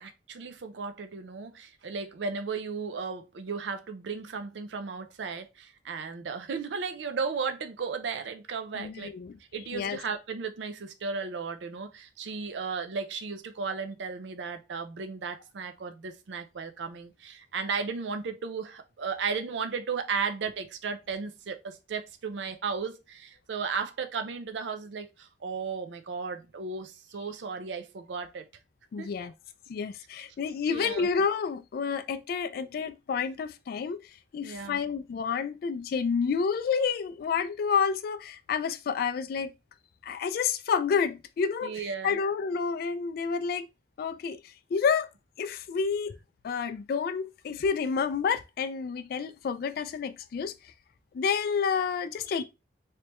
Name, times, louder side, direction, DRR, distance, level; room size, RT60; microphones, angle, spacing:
voice 1, 0.0-9.1 9.5-28.4 29.0-29.1 30.7-31.1 34.4-34.8 41.6-42.2, right 5 dB, 85° right, 0.5 m, -35 dB
voice 2, 8.7-9.4 9.7-10.0 28.9-29.3 29.7-39.5 40.0-43.7 44.0-45.1 45.4-46.2 46.4-50.7 51.1-52.4, left 6 dB, 60° left, 0.3 m, -29 dB
3.3 x 3.1 x 2.9 m
head